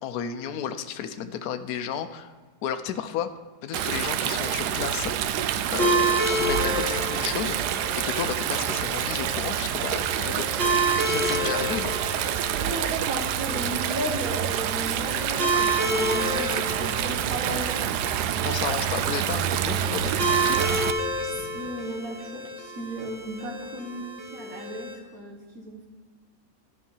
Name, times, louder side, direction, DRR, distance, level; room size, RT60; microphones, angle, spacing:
voice 1, 0.0-2.3 2.6-3.3 3.6-10.5 10.9-12.0 18.4-20.6, left 8 dB, 75° left, 8 dB, 1.1 m, -33 dB
Stream, 3.7-20.9, right 10 dB, 90° right, 1.1 m, -27 dB
sound 1, 4.2-21.7, left 2 dB, 20° left, 2.4 m, -45 dB
sound 2, 5.8-24.9, right 1 dB, 35° right, 2.0 m, -30 dB
voice 2, 12.6-17.7 21.2-25.9, right 1 dB, 60° right, 1 dB, 2.0 m, -35 dB
12.0 x 5.6 x 5.5 m, 1.4 s
omnidirectional pair, 1.7 m